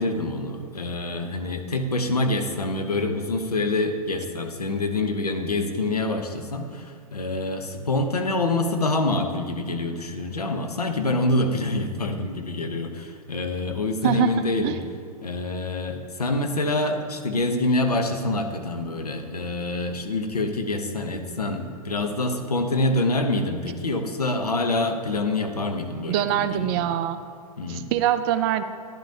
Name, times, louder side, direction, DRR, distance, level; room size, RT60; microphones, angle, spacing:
voice 1, 0.0-14.7 15.2-26.8 27.6-27.9, left 2 dB, 85° left, 4 dB, 1.0 m, -26 dB
voice 2, 26.1-27.2 27.7-28.6, right 12 dB, 40° right, 11 dB, 0.6 m, -24 dB
12.0 x 10.0 x 2.8 m, 2.2 s
figure-of-eight pair, 105°, 19 cm